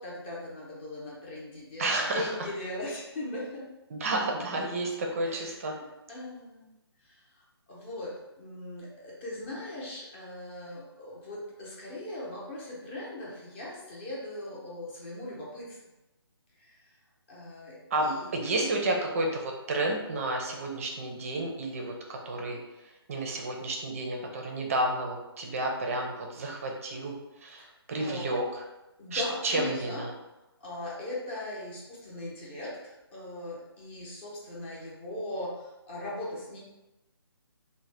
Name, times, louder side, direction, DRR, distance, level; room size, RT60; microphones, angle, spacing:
voice 1, 0.0-3.7 4.5-4.6 5.2-6.7 7.0-7.2 7.7-15.8 16.6-16.9 17.3-18.3 27.6-27.7 28.0-28.3 29.0-30.0 30.6-36.6, left 1 dB, 25° left, -5 dB, 0.7 m, -39 dB
voice 2, 1.8-2.3 3.9-5.7 17.9-22.6 23.1-27.1 27.4-27.6 27.9-28.4 29.1-30.1, right 2 dB, 35° right, 1 dB, 0.5 m, -31 dB
2.7 x 2.1 x 3.2 m, 0.98 s
hypercardioid pair, 155°, 14 cm